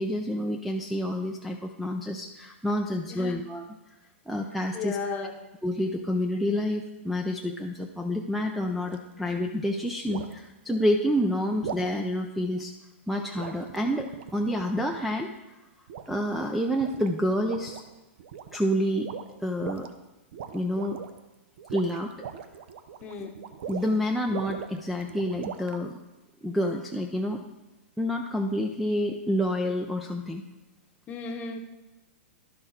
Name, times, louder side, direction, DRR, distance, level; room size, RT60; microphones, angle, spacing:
voice 1, 0.0-3.6 4.3-5.1 5.6-12.7 13.1-15.3 16.1-17.8 18.5-19.1 19.4-19.9 20.5-21.0 21.7-22.1 23.7-25.9 26.4-27.4 28.0-30.4, equal, ahead, 4 dB, 0.4 m, -28 dB
voice 2, 4.7-5.3 23.0-23.4 31.1-31.6, left 5 dB, 25° left, 5 dB, 0.9 m, -34 dB
sound 1, 8.9-9.1 10.1-10.4 11.6-12.0 13.3-15.2 15.9-16.4 16.7-17.1 17.4-17.9 18.2-18.7 19.0-19.9 20.3-21.2 21.6-24.0 24.3-25.8, right 7 dB, 60° right, 0.7 m, -40 dB
11.0 x 6.1 x 3.8 m, 1.1 s
hypercardioid pair, 135°, 7 cm